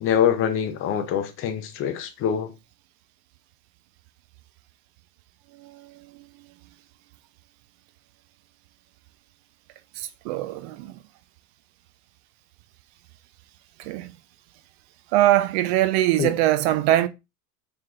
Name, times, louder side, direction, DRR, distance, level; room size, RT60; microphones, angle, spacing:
voice 1, 0.0-2.5 16.2-16.3, left 8 dB, 25° left, 0.6 m, -24 dB
voice 2, 5.5-6.3 9.9-11.0 13.8-14.1 15.1-17.1, right 14 dB, 45° right, 0.5 m, -23 dB
4.3 x 3.2 x 2.3 m
figure-of-eight pair, 80°, 49 cm